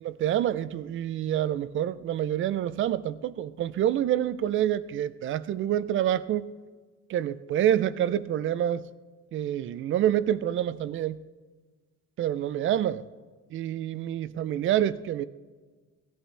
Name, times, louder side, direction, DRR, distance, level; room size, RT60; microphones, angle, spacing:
voice 1, 0.0-6.5 7.1-8.8 9.3-11.2 12.2-13.0 13.5-15.2, right 11 dB, 40° right, 16 dB, 0.4 m, -27 dB
18.0 x 13.5 x 3.3 m, 1.4 s
cardioid pair, 150°, 31 cm